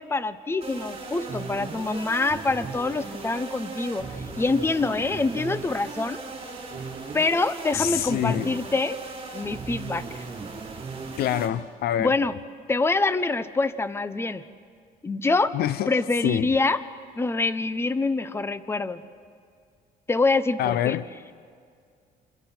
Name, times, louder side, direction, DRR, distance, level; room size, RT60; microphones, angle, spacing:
voice 1, 0.0-4.1 4.3-6.2 7.1-9.0 9.3-10.3 12.0-12.4 12.7-14.4 15.0-15.5 15.9-16.8 17.2-19.0 20.1-21.0, left 3 dB, 15° left, 0.7 m, -25 dB
sound 1, 0.6-11.5, right 4 dB, 35° right, 6.3 m, -37 dB
voice 2, 7.7-8.5 11.2-12.1 15.5-15.9 16.2-16.5 20.6-21.0, left 11 dB, 65° left, 0.6 m, -25 dB
27.5 x 26.5 x 4.4 m
cardioid pair, 110°, 17 cm